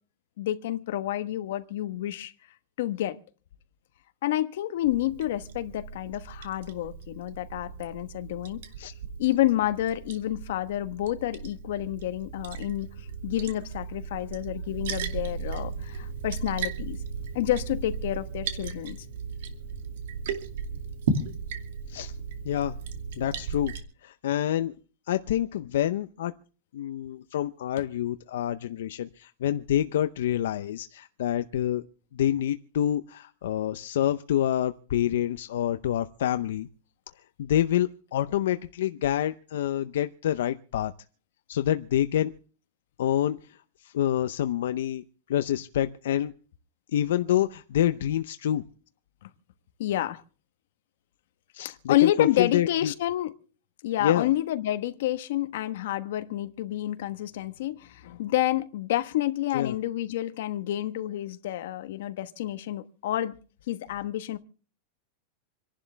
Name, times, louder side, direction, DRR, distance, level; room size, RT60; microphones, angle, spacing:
voice 1, 0.4-2.3 2.8-3.2 4.2-8.6 9.2-12.9 13.2-17.0 17.3-19.0 49.2-49.3 49.8-50.2 51.6-53.3 53.8-63.4 63.7-64.4, left 14 dB, 65° left, 1.2 m, -29 dB
Liquid, 4.8-23.8, right 5 dB, 70° right, 2.4 m, -36 dB
voice 2, 22.4-22.8 23.2-23.7 24.0-24.7 25.1-26.3 26.7-31.8 32.1-36.7 37.4-40.9 41.5-42.3 43.0-43.6 43.8-45.0 45.3-46.3 46.9-48.6 51.5-52.9 54.0-54.3 59.5-59.8, left 11 dB, 85° left, 0.7 m, -27 dB
27.5 x 11.5 x 3.4 m
supercardioid pair, 175°, 0 cm